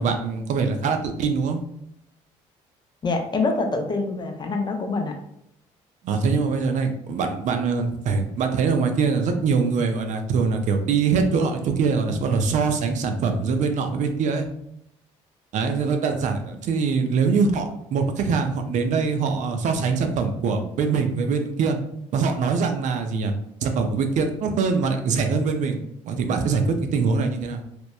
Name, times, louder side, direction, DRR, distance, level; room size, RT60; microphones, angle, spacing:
voice 1, 0.0-1.6 6.0-14.5 15.5-21.8 22.1-23.3 23.6-27.6, right 5 dB, 60° right, 5 dB, 0.4 m, -23 dB
voice 2, 3.0-5.1, left 3 dB, 30° left, 4 dB, 0.5 m, -25 dB
2.9 x 2.0 x 2.2 m, 0.74 s
supercardioid pair, 75°, 15 cm